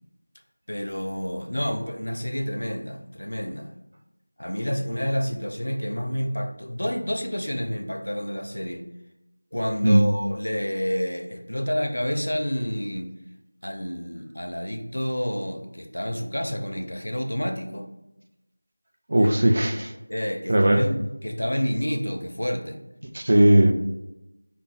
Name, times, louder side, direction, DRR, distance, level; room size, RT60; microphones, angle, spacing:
voice 1, 0.7-3.7 4.4-8.8 9.5-13.1 13.6-17.9 19.2-19.3 20.1-22.8, equal, 85° left, 5 dB, 0.7 m, -29 dB
voice 2, 19.1-19.9 20.5-20.8 23.1-23.7, right 1 dB, 40° right, 3 dB, 0.5 m, -17 dB
5.2 x 2.1 x 4.3 m, 0.93 s
figure-of-eight pair, 175°, 0 cm